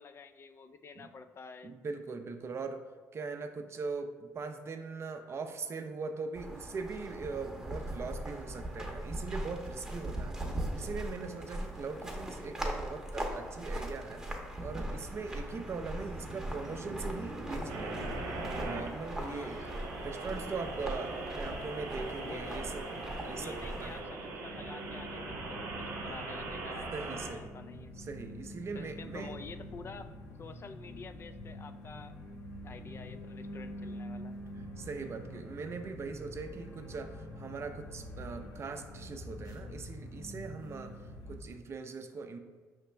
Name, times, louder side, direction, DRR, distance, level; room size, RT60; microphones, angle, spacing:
voice 1, 0.0-1.8 19.3-19.7 21.5-21.9 22.2-22.7 23.4-27.9 28.7-32.1 32.6-34.4, left 5 dB, 40° left, 10 dB, 0.3 m, -49 dB
voice 2, 1.6-2.8 3.1-14.2 14.6-18.0 18.5-19.6 20.0-24.0 26.9-27.5 28.0-29.3 34.8-41.0 41.3-42.4, right 4 dB, 45° right, 7 dB, 0.4 m, -41 dB
sound 1, 6.3-24.0, right 1 dB, 10° right, 0.8 m, -40 dB
sound 2, 17.7-27.3, right 3 dB, 90° right, 0.6 m, -40 dB
sound 3, 22.1-41.4, equal, 60° left, 0.9 m, -46 dB
5.0 x 3.2 x 3.3 m, 1.4 s
supercardioid pair, 70°, 6 cm